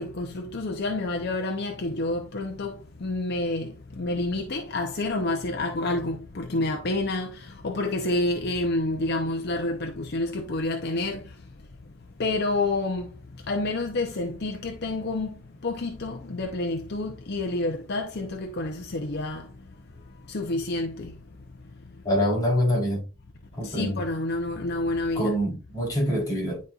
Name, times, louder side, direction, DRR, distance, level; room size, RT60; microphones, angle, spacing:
voice 1, 0.0-11.2 12.2-13.1 13.5-15.3 15.6-19.5 20.3-21.1 23.6-25.3, left 2 dB, 55° left, 0.7 m, -28 dB
voice 2, 22.0-23.0 23.6-24.0 25.1-26.6, equal, 20° left, 3.5 m, -25 dB
10.5 x 4.2 x 2.4 m
head